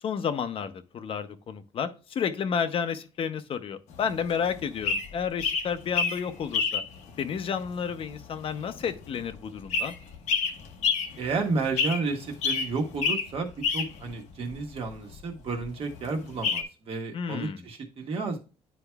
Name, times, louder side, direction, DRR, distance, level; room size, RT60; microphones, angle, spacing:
voice 1, 0.0-6.8 7.2-9.9 17.1-17.6, left 7 dB, 50° left, 10 dB, 0.6 m, -31 dB
sound 1, 3.9-16.6, left 5 dB, 80° left, 0.9 m, -30 dB
voice 2, 11.2-18.4, right 4 dB, 55° right, 3 dB, 1.3 m, -32 dB
10.0 x 4.5 x 2.3 m, 0.33 s
cardioid pair, 115°, 12 cm